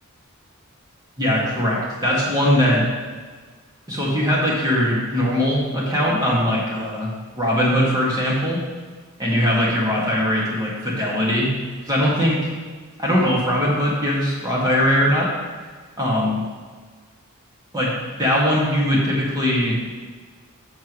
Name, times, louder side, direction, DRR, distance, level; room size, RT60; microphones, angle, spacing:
voice 1, 1.2-2.8 3.9-8.6 9.2-11.5 11.9-12.5 13.0-15.3 16.0-16.4 17.7-19.8, equal, 15° right, -5 dB, 2.1 m, -20 dB
11.5 x 7.2 x 3.2 m, 1.5 s
head